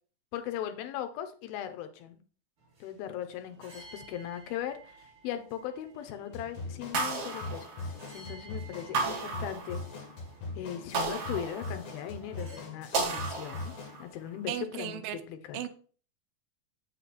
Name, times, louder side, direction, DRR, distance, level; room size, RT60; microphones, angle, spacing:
voice 1, 0.3-2.2 2.8-9.8 10.6-15.6, left 10 dB, 80° left, 2.7 m, -39 dB
sound 1, 2.6-12.6, right 2 dB, 30° right, 2.7 m, -55 dB
sound 2, 6.3-14.0, left 3 dB, 60° left, 3.1 m, -41 dB
sound 3, 6.9-8.3 8.9-10.1 10.9-12.2 12.9-14.1, right 4 dB, 55° right, 2.8 m, -34 dB
voice 2, 14.5-15.2 15.5-15.7, right 11 dB, 80° right, 2.4 m, -35 dB
7.7 x 6.2 x 4.2 m
omnidirectional pair, 4.3 m